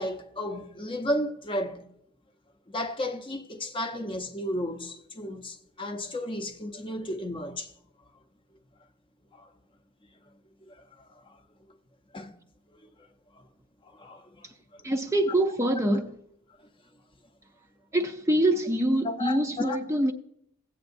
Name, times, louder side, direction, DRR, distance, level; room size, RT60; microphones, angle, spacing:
voice 1, 0.0-1.9 2.7-7.7 9.3-9.5 10.7-10.9 11.2-11.4 12.1-12.3 13.8-14.5 14.7-14.8 16.6-16.7 19.0-19.8, left 1 dB, 25° left, 0.7 m, -33 dB
voice 2, 14.8-16.2 17.9-20.1, right 1 dB, 15° right, 0.6 m, -25 dB
17.0 x 8.3 x 2.6 m
head